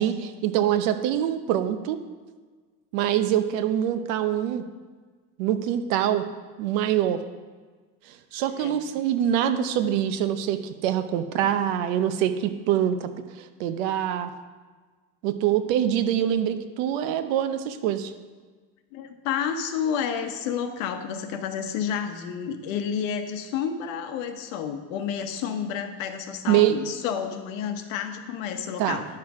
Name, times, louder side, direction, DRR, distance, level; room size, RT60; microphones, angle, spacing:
voice 1, 0.0-2.0 2.9-4.6 5.4-6.2 6.6-7.2 8.3-13.1 13.4-14.3 15.2-18.1 26.5-26.8 28.8-29.0, right 10 dB, 85° right, 10 dB, 0.8 m, -24 dB
voice 2, 18.9-29.1, left 7 dB, 85° left, 7 dB, 1.1 m, -30 dB
11.0 x 5.9 x 4.8 m, 1.4 s
cardioid pair, 175°, 38 cm